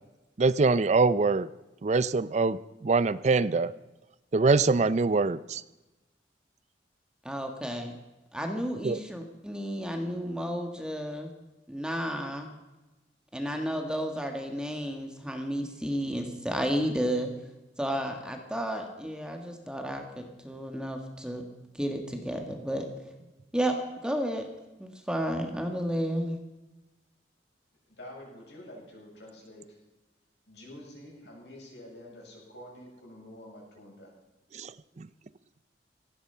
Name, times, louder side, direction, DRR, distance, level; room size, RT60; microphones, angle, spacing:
voice 1, 0.4-1.5 1.8-3.7 4.3-5.6 8.8-9.0 34.5-35.1, right 4 dB, 40° right, 17 dB, 0.4 m, -24 dB
voice 2, 7.2-8.0 8.3-11.3 11.7-12.5 13.3-17.3 17.8-21.4 21.8-22.8 23.5-24.5 24.8-26.4, equal, 5° right, 4 dB, 1.6 m, -32 dB
voice 3, 27.9-29.8 30.5-34.1, left 1 dB, 75° left, -2 dB, 7.5 m, -48 dB
17.5 x 14.5 x 5.6 m, 1.1 s
head